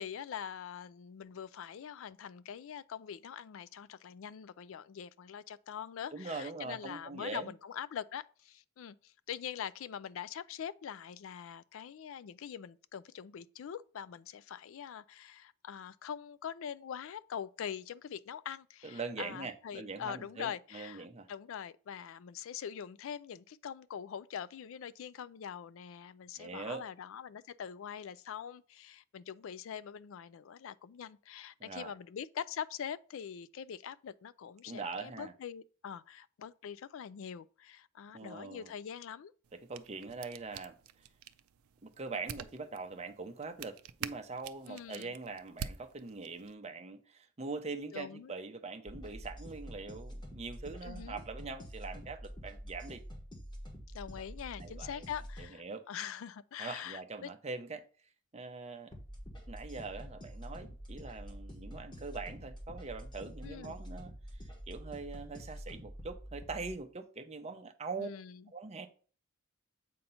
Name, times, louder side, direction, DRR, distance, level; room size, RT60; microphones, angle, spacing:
voice 1, 0.0-39.3 44.7-45.1 47.9-48.3 50.8-51.2 53.9-57.3 63.4-63.8 68.0-68.4, left 8 dB, 60° left, 0.3 m, -43 dB
voice 2, 6.1-7.5 18.8-21.3 26.4-26.8 31.6-31.9 34.6-35.3 38.1-38.7 39.5-40.7 41.8-53.0 54.6-55.0 55.4-55.8 56.6-57.8 58.3-58.9 59.5-64.1 64.4-68.1 68.5-68.9, right 4 dB, 30° right, 0.6 m, -42 dB
sound 1, 39.4-46.5, right 8 dB, 75° right, 0.4 m, -47 dB
sound 2, 48.9-55.5 58.9-66.8, equal, 20° left, 1.2 m, -47 dB
7.6 x 2.9 x 5.4 m
head